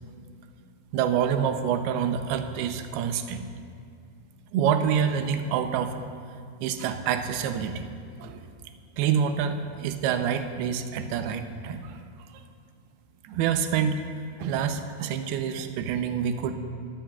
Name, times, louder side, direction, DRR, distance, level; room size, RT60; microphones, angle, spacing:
voice 1, 0.9-3.4 4.5-6.0 6.6-7.9 8.2-8.5 9.0-12.0 13.2-14.0 14.4-16.5, right 8 dB, 80° right, 7 dB, 2.3 m, -27 dB
22.0 x 15.0 x 2.3 m, 2.2 s
omnidirectional pair, 5.2 m